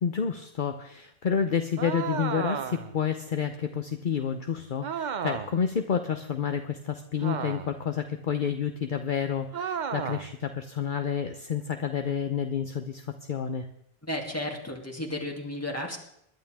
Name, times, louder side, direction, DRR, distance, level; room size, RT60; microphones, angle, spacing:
voice 1, 0.0-13.7, left 7 dB, 55° left, 7 dB, 0.9 m, -29 dB
sound 1, 1.8-3.0 4.8-5.6 7.2-7.9 9.5-10.3, right 7 dB, 50° right, 0.8 m, -33 dB
voice 2, 14.0-16.0, left 1 dB, 15° left, 0 dB, 2.7 m, -33 dB
21.5 x 11.5 x 3.5 m, 0.75 s
omnidirectional pair, 1.1 m